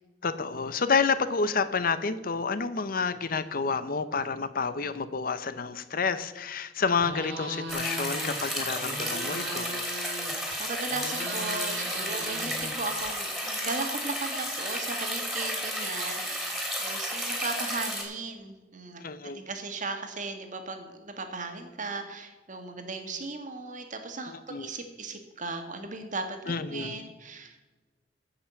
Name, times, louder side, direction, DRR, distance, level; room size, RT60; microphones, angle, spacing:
voice 1, 0.2-9.8 19.0-19.4 24.3-24.7 26.5-27.0, left 5 dB, 55° left, 13 dB, 0.7 m, -29 dB
sound 1, 7.0-8.4 8.7-10.5 10.9-13.1, right 1 dB, 75° right, 2.3 m, -38 dB
sound 2, 7.7-18.0, equal, ahead, 3.2 m, -32 dB
voice 2, 10.6-27.7, right 3 dB, 45° right, 6 dB, 1.7 m, -37 dB
15.0 x 5.8 x 6.9 m, 1.2 s
head